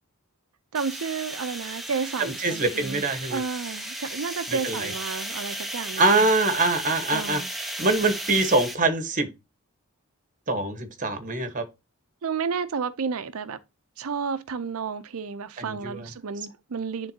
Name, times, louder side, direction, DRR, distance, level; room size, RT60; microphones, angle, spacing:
sound 1, 0.7-8.7, right 1 dB, ahead, 0.8 m, -35 dB
voice 1, 0.7-3.0 3.3-6.2 7.1-7.5 12.2-13.6 14.0-17.1, right 5 dB, 75° right, 0.5 m, -31 dB
voice 2, 2.2-3.4 4.5-4.9 6.0-7.4 7.8-9.3 10.5-11.6 15.6-16.1, right 2 dB, 35° right, 1.2 m, -24 dB
10.5 x 3.7 x 2.8 m
head